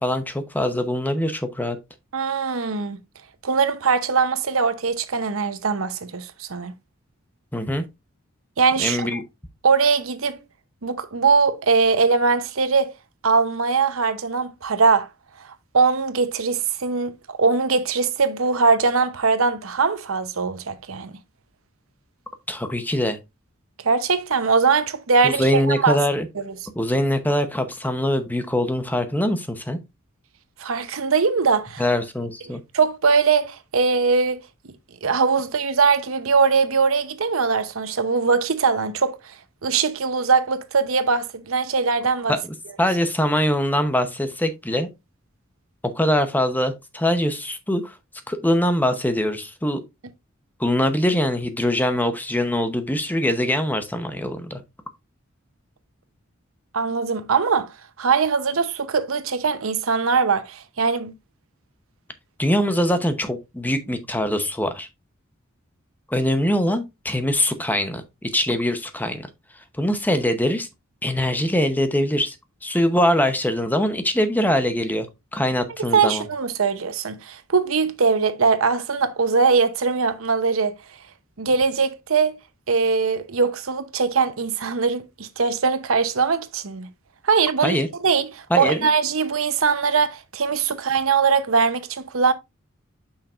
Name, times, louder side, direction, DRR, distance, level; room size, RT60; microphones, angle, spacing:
voice 1, 0.0-1.8 7.5-7.8 8.8-9.2 22.5-23.2 25.2-26.3 26.8-29.8 31.8-32.6 42.3-44.9 45.9-47.9 48.3-49.8 50.6-54.6 62.4-64.9 66.1-69.3 69.8-70.7 71.0-72.4 72.6-75.1 75.3-76.3 87.6-87.9 88.5-88.9, left 1 dB, 10° left, 0.8 m, -23 dB
voice 2, 2.1-3.0 3.4-6.7 8.6-9.2 9.6-10.4 10.8-12.9 13.2-15.1 15.4-15.5 15.7-21.1 23.8-26.0 26.5-26.6 30.6-31.8 32.7-34.4 35.0-39.3 39.6-42.3 56.7-57.7 58.0-61.1 75.9-80.8 81.4-82.4 82.7-86.9 87.2-92.3, right 5 dB, 75° right, 0.8 m, -21 dB
7.2 x 5.7 x 2.5 m
head